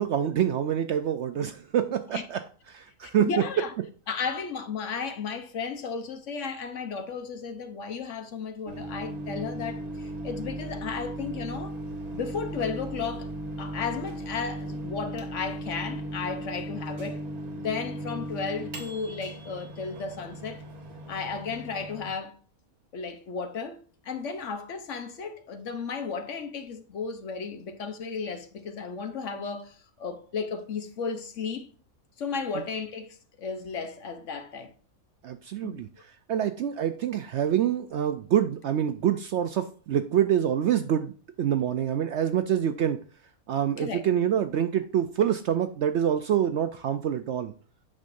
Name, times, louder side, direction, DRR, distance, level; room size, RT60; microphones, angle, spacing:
voice 1, 0.0-2.4 2.7-3.4 35.2-35.9 36.3-43.0 43.5-47.5, right 9 dB, 65° right, 0.7 m, -26 dB
voice 2, 3.2-3.7 4.1-11.7 12.1-13.3 13.6-17.2 17.5-20.6 21.1-22.4 22.9-31.7 32.2-34.7 35.6-35.8 43.8-44.0, left 5 dB, 60° left, 1.1 m, -34 dB
Microwave oven, 8.7-22.1, right 1 dB, 85° right, 1.8 m, -37 dB
8.7 x 6.4 x 2.6 m
omnidirectional pair, 1.5 m